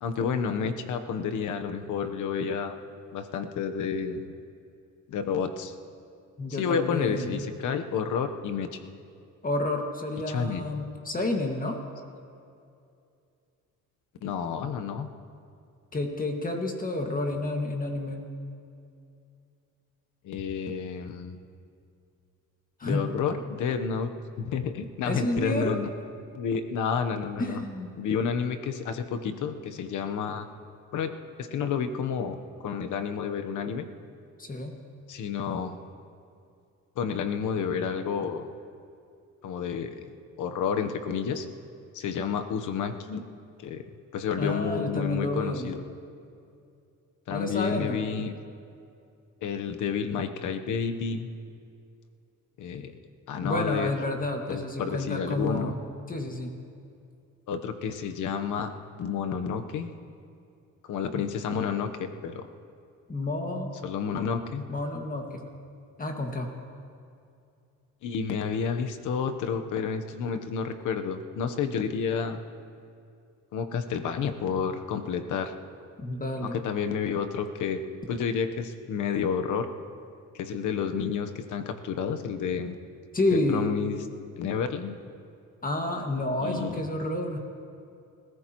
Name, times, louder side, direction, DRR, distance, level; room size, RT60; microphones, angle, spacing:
voice 1, 0.0-2.8 3.1-4.3 5.1-5.7 6.5-8.8 10.3-10.7 14.2-15.1 20.2-21.4 22.8-24.1 24.4-25.9 26.3-27.6 28.0-30.5 30.9-31.1 31.4-33.9 35.1-35.8 37.0-38.5 39.4-40.0 40.4-41.5 41.9-43.2 43.6-43.8 44.1-45.8 47.3-48.3 49.4-51.3 52.6-52.9 53.3-53.9 54.5-55.7 57.5-58.7 59.0-59.9 60.9-62.5 63.8-64.6 68.0-72.4 73.5-75.5 76.4-79.7 80.3-82.8 83.3-84.0 84.4-85.0 86.4-86.8, left 6 dB, 80° left, 7 dB, 1.1 m, -30 dB
voice 2, 6.4-7.3 9.4-11.8 15.9-18.3 22.8-23.1 25.0-25.8 27.4-27.9 34.4-34.7 44.4-45.7 47.3-48.0 53.4-55.8 56.1-56.5 61.1-61.3 63.1-63.7 64.7-65.4 66.0-66.5 76.0-76.6 83.1-83.7 85.6-87.4, left 2 dB, 30° left, 2 dB, 1.9 m, -30 dB
29.5 x 14.5 x 3.1 m, 2.5 s
cardioid pair, 90°, 30 cm